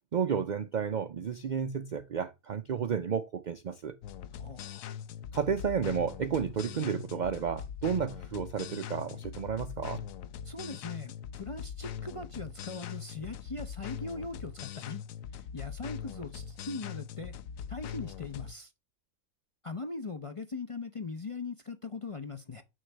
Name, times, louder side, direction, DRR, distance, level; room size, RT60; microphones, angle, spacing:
voice 1, 0.1-4.0 5.3-10.0, right 7 dB, 75° right, 0.4 m, -32 dB
sound 1, 4.0-18.5, left 8 dB, 75° left, 1.0 m, -42 dB
voice 2, 4.4-4.9 10.4-15.0 15.3-17.4 17.7-18.7 19.6-22.6, left 3 dB, 35° left, 0.5 m, -40 dB
6.4 x 6.4 x 3.3 m
omnidirectional pair, 1.5 m